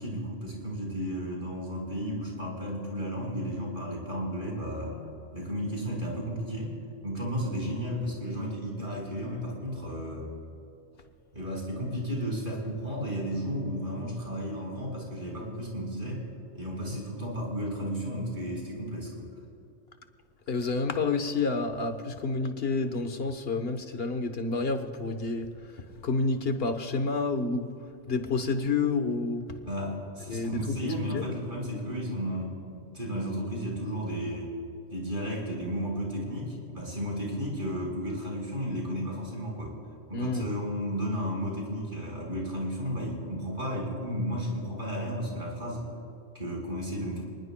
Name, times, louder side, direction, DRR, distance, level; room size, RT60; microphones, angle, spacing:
voice 1, 0.0-5.0 5.3-6.7 7.0-10.3 11.3-16.2 16.5-19.3 29.6-34.5 34.9-39.7 40.1-45.9 46.3-47.2, equal, 45° right, -2 dB, 5.1 m, -33 dB
voice 2, 20.5-25.5 25.8-27.7 28.1-29.6 30.3-30.8 31.1-31.2 40.1-40.5, left 3 dB, 55° left, 7 dB, 1.3 m, -29 dB
29.5 x 20.0 x 2.3 m, 2.6 s
omnidirectional pair, 1.2 m